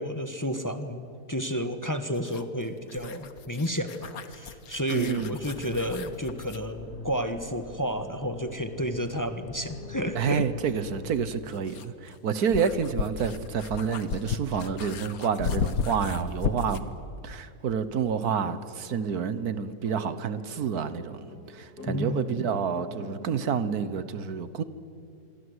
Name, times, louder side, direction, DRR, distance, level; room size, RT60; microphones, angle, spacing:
voice 1, 0.0-10.4 21.9-22.4, equal, 15° left, 1.2 m, -31 dB
sound 1, 2.1-6.7 9.0-9.1 11.1-16.9, left 5 dB, 70° left, 1.6 m, -35 dB
voice 2, 4.9-5.4 10.1-16.8 17.2-24.6, right 6 dB, 75° right, 1.6 m, -29 dB
sound 2, 5.0-11.3, left 3 dB, 45° left, 2.1 m, -44 dB
sound 3, 18.2-23.6, left 2 dB, 85° left, 3.8 m, -45 dB
26.5 x 24.0 x 8.1 m
omnidirectional pair, 1.6 m